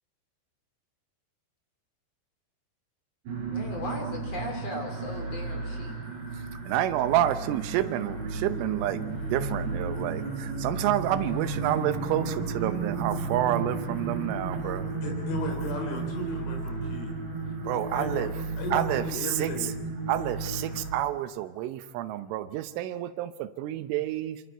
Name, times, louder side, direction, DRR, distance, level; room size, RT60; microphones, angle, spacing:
Monk Chant Temple, 3.3-20.9, right 3 dB, 60° right, 7.3 m, -33 dB
voice 1, 3.5-6.0, left 1 dB, 35° left, 2 dB, 3.3 m, -37 dB
voice 2, 6.7-14.9 17.7-18.3 18.7-19.5 20.1-24.4, right 13 dB, 85° right, 11 dB, 3.4 m, -29 dB
voice 3, 14.5-17.1 17.9-18.3 18.6-19.7, left 2 dB, 70° left, 2 dB, 5.7 m, -35 dB
27.0 x 25.5 x 4.6 m, 1.2 s
omnidirectional pair, 5.6 m